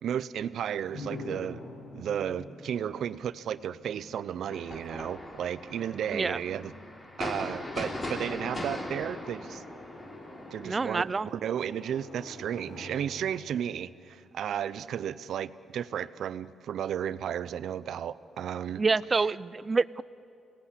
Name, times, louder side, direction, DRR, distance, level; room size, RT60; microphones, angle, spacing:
voice 1, 0.0-1.6 1.9-6.7 7.2-9.6 10.5-18.8, right 9 dB, 75° right, 15 dB, 0.7 m, -33 dB
sound 1, 0.9-14.7, left 1 dB, 75° left, 7.9 m, -47 dB
sound 2, 4.5-11.0, left 1 dB, 30° left, 3.3 m, -39 dB
voice 2, 10.6-11.3 18.8-20.0, right 4 dB, 35° right, 18 dB, 0.5 m, -27 dB
27.5 x 18.5 x 8.3 m, 2.6 s
cardioid pair, 85°, 0 cm